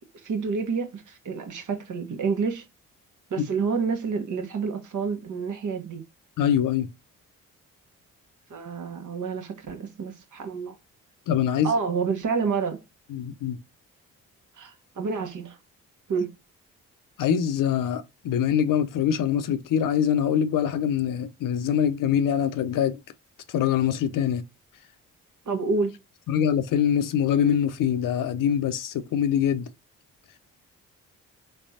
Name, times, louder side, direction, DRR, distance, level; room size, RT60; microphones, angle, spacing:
voice 1, 0.1-2.6 3.3-6.0 8.5-10.7 11.6-12.8 14.6-15.6 16.1-16.3 25.5-25.9, right 5 dB, 60° right, 1.1 m, -28 dB
voice 2, 6.4-6.9 11.3-11.7 13.1-13.6 17.2-23.0 23.5-24.4 26.3-29.7, left 9 dB, 65° left, 0.6 m, -24 dB
3.5 x 3.3 x 2.7 m
supercardioid pair, 45°, 34 cm